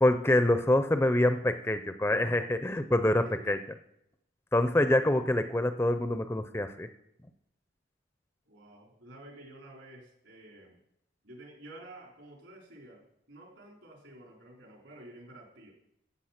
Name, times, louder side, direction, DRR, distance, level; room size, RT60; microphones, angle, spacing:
voice 1, 0.0-3.6 4.5-6.9, left 1 dB, 10° left, 9 dB, 0.5 m, -26 dB
voice 2, 3.2-3.5 8.5-10.8 11.2-15.7, right 1 dB, 70° right, 0 dB, 3.9 m, -51 dB
14.0 x 8.2 x 5.8 m, 0.78 s
head